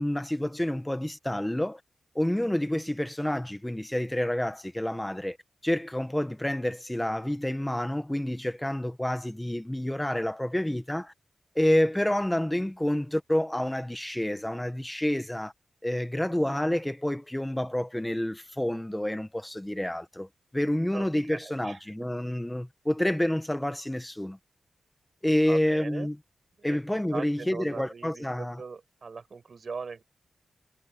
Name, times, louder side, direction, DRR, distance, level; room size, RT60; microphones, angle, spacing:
voice 1, 0.0-1.8 2.1-5.4 5.6-11.1 11.5-15.5 15.8-20.3 20.5-24.4 25.2-26.1 26.6-28.6, left 1 dB, 10° left, 1.5 m, -28 dB
voice 2, 20.9-21.8 25.3-26.1 26.6-26.8 27.1-30.0, right 5 dB, 55° right, 6.2 m, -40 dB
wide cardioid pair, 85°, 0 cm